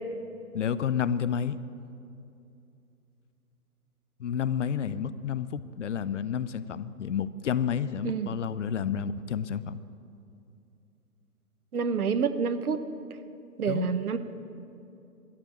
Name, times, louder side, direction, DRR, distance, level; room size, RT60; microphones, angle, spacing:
voice 1, 0.5-1.6 4.2-9.8 13.7-13.9, left 8 dB, 50° left, 15 dB, 0.6 m, -30 dB
voice 2, 11.7-12.8 13.6-14.2, right 6 dB, 65° right, 11 dB, 1.1 m, -27 dB
12.0 x 9.9 x 8.7 m, 2.6 s
figure-of-eight pair, 130°, 46 cm